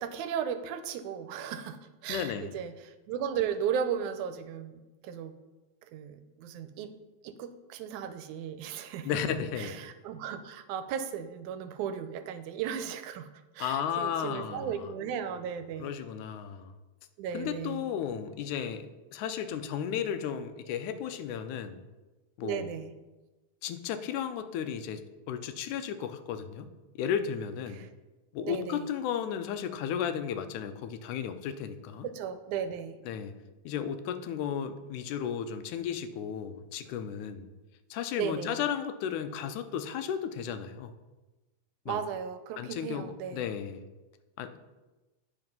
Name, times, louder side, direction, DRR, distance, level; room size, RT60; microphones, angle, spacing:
voice 1, 0.0-5.3 5.9-6.9 7.2-9.1 9.6-13.3 13.6-15.9 17.2-17.9 22.4-22.9 27.7-27.9 28.4-28.9 32.0-33.0 38.2-38.6 41.9-43.5, right 8 dB, 85° right, 10 dB, 2.0 m, -35 dB
voice 2, 2.1-2.5 9.1-9.8 13.6-14.9 15.8-16.7 17.3-21.9 22.4-22.7 23.6-26.7 27.0-27.9 28.3-32.1 33.1-33.3 33.7-37.5 37.9-40.9 41.9-42.0 42.6-43.8 44.4-44.6, left 8 dB, 85° left, 9 dB, 2.1 m, -34 dB
9.8 x 5.0 x 5.3 m, 1.1 s
omnidirectional pair, 3.4 m